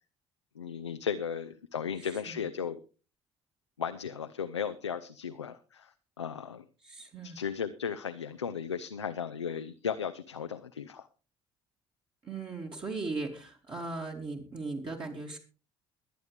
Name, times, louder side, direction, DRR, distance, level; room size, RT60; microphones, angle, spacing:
voice 1, 0.6-2.8 3.8-5.9 6.2-6.6 7.2-11.1, left 7 dB, 80° left, 9 dB, 0.5 m, -35 dB
voice 2, 2.0-2.4 6.8-7.4 12.2-15.4, right 3 dB, 35° right, -1 dB, 2.3 m, -38 dB
22.5 x 9.1 x 3.3 m, 0.35 s
figure-of-eight pair, 50°, 15 cm